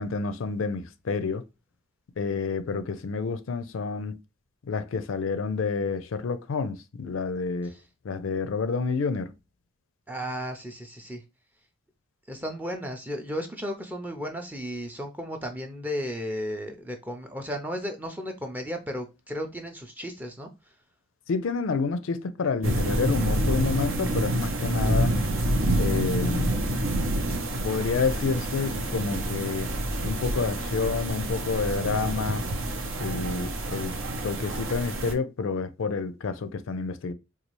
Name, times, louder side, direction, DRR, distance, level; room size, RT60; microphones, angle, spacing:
voice 1, 0.0-1.4 2.2-4.2 4.6-7.7 8.0-9.3 21.3-25.1 25.8-26.6 27.6-29.7 30.0-32.4 33.0-33.9 34.2-37.1, left 4 dB, 70° left, 0.4 m, -29 dB
voice 2, 10.1-11.2 12.3-20.7, equal, 10° right, 0.5 m, -34 dB
sound 1, 22.6-35.1, right 1 dB, 75° right, 0.7 m, -28 dB
4.1 x 2.3 x 3.0 m
head